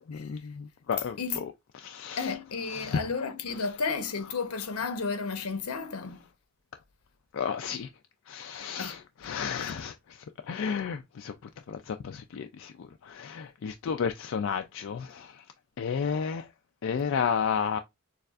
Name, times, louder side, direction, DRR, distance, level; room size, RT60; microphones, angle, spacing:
voice 1, 0.0-1.5 1.8-2.3 2.7-3.0 3.5-3.6 7.3-7.9 8.3-9.9 10.5-11.3 11.7-15.3 15.8-16.4 16.8-17.8, left 6 dB, 60° left, 0.3 m, -32 dB
voice 2, 2.2-6.2 8.8-9.0 9.6-9.7, left 5 dB, 85° left, 0.9 m, -32 dB
6.6 x 2.4 x 2.4 m
head